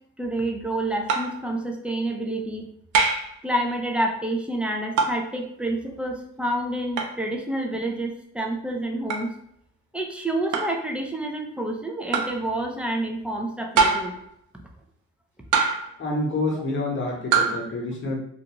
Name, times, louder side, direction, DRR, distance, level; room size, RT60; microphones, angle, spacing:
voice 1, 0.2-2.7 3.4-9.3 9.9-14.2 16.5-16.6, right 1 dB, 5° right, 1 dB, 0.4 m, -28 dB
sound 1, 1.1-1.4 2.9-3.3 5.0-5.3 7.0-7.2 9.1-9.3 10.5-10.8 12.1-12.4 13.8-14.2 15.5-16.0 17.3-17.6, right 5 dB, 85° right, 0.5 m, -23 dB
voice 2, 16.0-18.2, left 2 dB, 40° left, -1 dB, 0.9 m, -27 dB
2.4 x 2.4 x 2.9 m, 0.70 s
cardioid pair, 90°, 30 cm